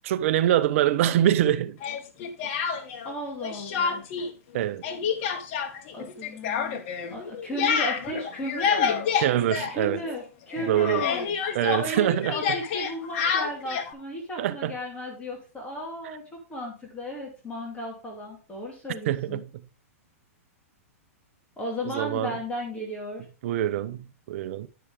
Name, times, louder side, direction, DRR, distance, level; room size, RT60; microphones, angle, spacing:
voice 1, 0.0-1.8 4.5-4.9 9.1-10.0 10.6-11.1 11.5-12.4 14.4-14.7 19.1-19.4 21.8-22.3 23.4-24.7, right 12 dB, 60° right, 0.7 m, -24 dB
Speech, 1.8-3.1 3.4-4.3 4.5-10.2 10.5-13.9, left 7 dB, 50° left, 1.5 m, -28 dB
voice 2, 3.0-4.0 5.9-6.8 7.1-9.1 9.7-11.3 11.7-19.4 21.6-23.3, equal, 15° left, 2.7 m, -35 dB
10.5 x 6.4 x 3.4 m
hypercardioid pair, 120°, 8 cm